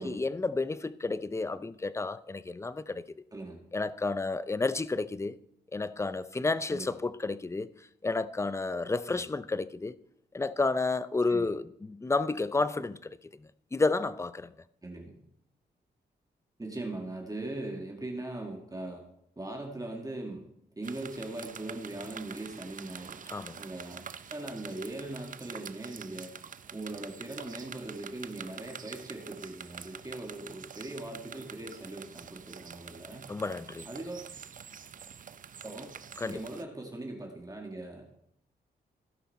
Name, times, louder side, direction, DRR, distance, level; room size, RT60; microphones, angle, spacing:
voice 1, 0.0-3.1 3.7-5.4 5.7-7.7 8.0-10.0 10.3-13.0 13.7-14.5 23.3-23.6 33.3-33.9 36.2-36.4, left 3 dB, 15° left, 0.5 m, -31 dB
voice 2, 14.8-15.1 16.6-19.0 19.4-20.5 20.8-23.2 23.6-24.0 24.3-26.3 26.7-33.3 33.9-34.3 35.6-35.9 36.2-38.0, right 2 dB, 20° right, 2.0 m, -40 dB
sound 1, 20.8-36.6, right 7 dB, 50° right, 0.6 m, -46 dB
16.0 x 5.6 x 4.2 m
cardioid pair, 70°, 18 cm